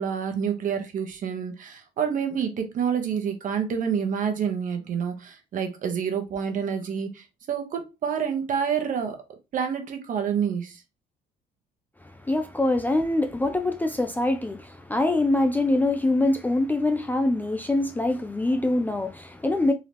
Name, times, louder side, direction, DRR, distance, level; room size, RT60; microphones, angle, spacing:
voice 1, 0.0-9.2 9.5-10.8, right 7 dB, 50° right, 1.1 m, -28 dB
voice 2, 12.2-19.7, left 2 dB, 10° left, 0.4 m, -24 dB
3.9 x 2.8 x 3.3 m
cardioid pair, 110°, 17 cm